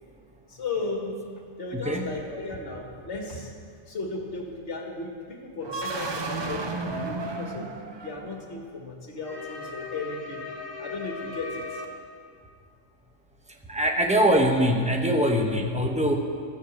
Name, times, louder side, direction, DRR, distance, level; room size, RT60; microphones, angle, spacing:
voice 1, 0.5-1.3 1.6-3.6 3.9-7.7 8.0-11.9, left 3 dB, 60° left, 0 dB, 1.9 m, -35 dB
voice 2, 1.7-2.1 13.7-16.1, equal, 5° right, 2 dB, 0.8 m, -23 dB
sound 1, 5.6-8.6, right 3 dB, 30° right, 0.5 m, -33 dB
13.5 x 6.8 x 7.4 m, 2.1 s
omnidirectional pair, 1.4 m